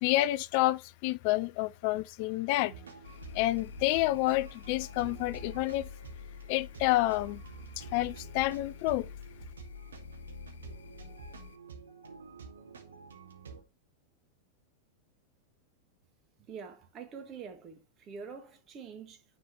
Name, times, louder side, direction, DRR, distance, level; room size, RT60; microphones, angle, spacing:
voice 1, 0.0-2.7 3.3-5.9 6.5-7.4 7.8-9.1, left 17 dB, 45° left, 0.3 m, -29 dB
sound 1, 2.6-13.6, right 5 dB, 70° right, 1.9 m, -49 dB
sound 2, 3.0-11.6, left 7 dB, 65° left, 0.7 m, -48 dB
voice 2, 16.5-19.2, right 6 dB, 30° right, 1.7 m, -45 dB
9.7 x 4.3 x 4.3 m
figure-of-eight pair, 90°, 0 cm